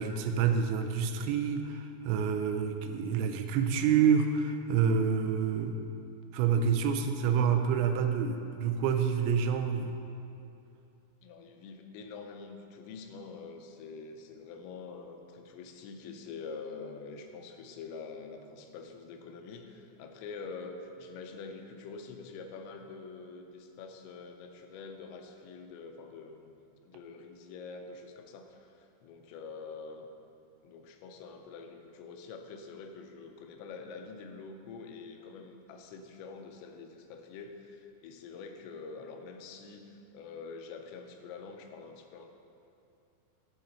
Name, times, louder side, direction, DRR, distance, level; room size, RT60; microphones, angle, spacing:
voice 1, 0.0-5.8 6.3-10.0, right 6 dB, 90° right, 6 dB, 2.9 m, -28 dB
voice 2, 11.2-26.6 26.8-30.1 30.6-42.3, left 4 dB, 85° left, 5 dB, 2.8 m, -46 dB
11.0 x 3.9 x 4.3 m, 2.6 s
omnidirectional pair, 5.1 m